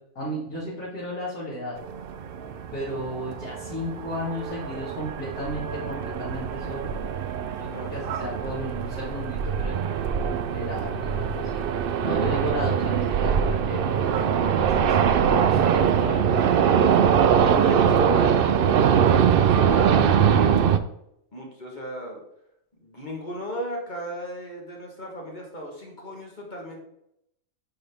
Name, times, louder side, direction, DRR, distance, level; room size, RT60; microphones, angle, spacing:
voice 1, 0.2-1.7 2.7-7.0 7.6-9.7 10.2-11.6 12.0-14.1 14.6-16.6 17.2-18.4, left 1 dB, 80° left, -10 dB, 2.8 m, -34 dB
sound 1, 1.8-20.8, right 8 dB, 70° right, 0.5 m, -22 dB
voice 2, 7.7-8.4 17.4-18.2 18.7-20.7 21.3-22.2 22.8-26.8, equal, 35° left, -1 dB, 1.6 m, -36 dB
9.7 x 3.9 x 3.5 m, 0.76 s
omnidirectional pair, 1.4 m